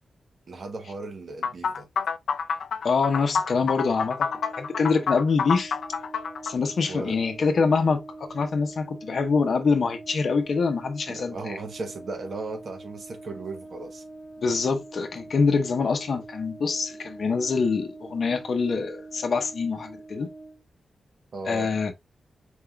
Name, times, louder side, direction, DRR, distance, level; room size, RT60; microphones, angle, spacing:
voice 1, 0.5-1.9 6.9-7.2 11.1-14.0 21.3-21.7, right 3 dB, 50° right, 0.9 m, -36 dB
sound 1, 1.4-6.6, left 6 dB, 85° left, 0.4 m, -28 dB
voice 2, 2.8-4.3 4.6-5.7 6.4-11.6 14.4-20.3 21.5-21.9, left 4 dB, 55° left, 0.8 m, -25 dB
Brass instrument, 4.2-20.6, right 2 dB, 15° right, 1.8 m, -44 dB
4.7 x 3.7 x 2.2 m
wide cardioid pair, 160°, 0 cm